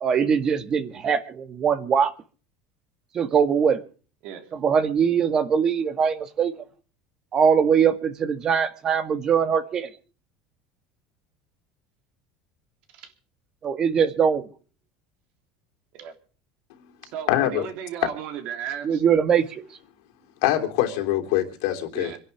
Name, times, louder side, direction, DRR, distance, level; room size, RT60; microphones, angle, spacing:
voice 1, 0.0-2.1 3.1-3.8 4.6-6.5 7.3-9.9 13.6-14.4 18.8-19.6, right 7 dB, 35° right, 1.9 m, -22 dB
voice 2, 4.2-4.6 12.9-13.1 15.9-16.1 17.0-19.0 21.9-22.2, right 9 dB, 60° right, 3.2 m, -35 dB
voice 3, 17.3-17.7 20.4-22.1, left 13 dB, 80° left, 3.3 m, -24 dB
27.0 x 11.0 x 3.5 m
supercardioid pair, 135°, 2 cm